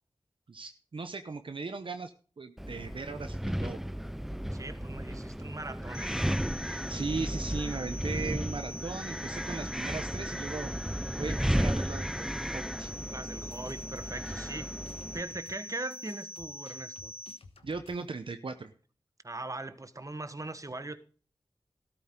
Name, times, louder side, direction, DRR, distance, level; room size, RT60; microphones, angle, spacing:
voice 1, 0.5-2.1 2.4-3.8 6.6-10.7 11.2-12.9 17.6-18.7, right 4 dB, 65° right, 0.9 m, -38 dB
Wind, 2.6-15.2, equal, 5° right, 0.4 m, -34 dB
voice 2, 4.5-6.2 13.1-14.7 15.1-17.1 19.2-21.0, right 2 dB, 35° right, 1.3 m, -40 dB
sound 1, 5.9-17.4, left 1 dB, 25° left, 0.9 m, -44 dB
sound 2, 13.5-18.2, left 4 dB, 80° left, 1.3 m, -55 dB
13.5 x 12.0 x 3.8 m
cardioid pair, 40°, 10 cm